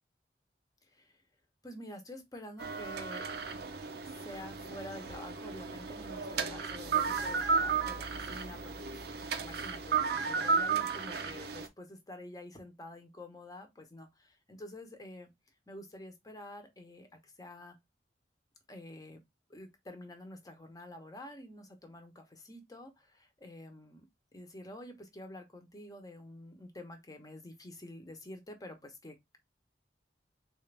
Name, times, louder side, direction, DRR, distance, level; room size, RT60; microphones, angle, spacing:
voice 1, 1.6-3.3 4.2-9.0 9.4-15.3 15.7-17.8 18.7-19.2 19.5-24.1 24.3-29.4, left 1 dB, 20° left, 0.8 m, -48 dB
sound 1, 2.6-11.7, right 5 dB, 60° right, 0.6 m, -34 dB
3.8 x 2.5 x 3.2 m
head